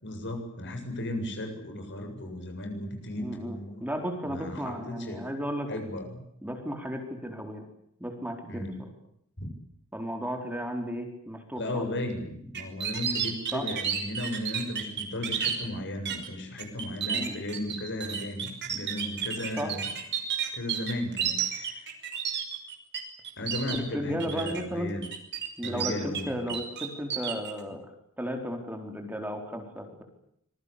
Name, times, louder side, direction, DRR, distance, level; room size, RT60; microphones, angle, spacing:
voice 1, 0.0-3.8 4.2-5.2 5.7-6.2 8.5-8.8 9.4-9.5 11.6-19.9 20.5-21.9 23.4-25.1 25.6-26.6, left 1 dB, 55° left, 4 dB, 7.8 m, -35 dB
voice 2, 3.2-5.7 6.4-7.6 8.0-8.7 9.9-11.9 13.5-13.6 17.1-17.4 19.6-19.7 23.8-24.9 25.6-27.9 28.2-30.0, equal, 10° right, 4 dB, 4.4 m, -34 dB
sound 1, 12.5-15.6 16.1-16.3 16.6-23.0 23.2-23.8 24.2-24.6 25.0-26.2 26.5-27.5, right 8 dB, 50° right, 5.7 m, -31 dB
26.5 x 22.5 x 8.5 m, 0.73 s
head